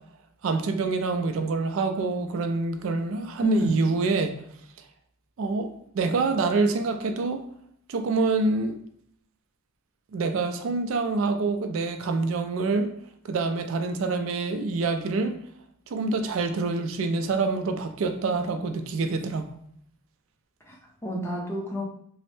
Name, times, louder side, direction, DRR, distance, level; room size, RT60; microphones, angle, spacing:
voice 1, 0.4-4.3 5.4-7.4 7.9-8.8 10.1-12.9 13.2-15.4 15.9-19.5, right 3 dB, 65° right, 7 dB, 0.3 m, -26 dB
voice 2, 3.4-3.8 20.6-21.8, equal, 10° left, -1 dB, 0.6 m, -29 dB
3.1 x 2.0 x 3.1 m, 0.68 s
head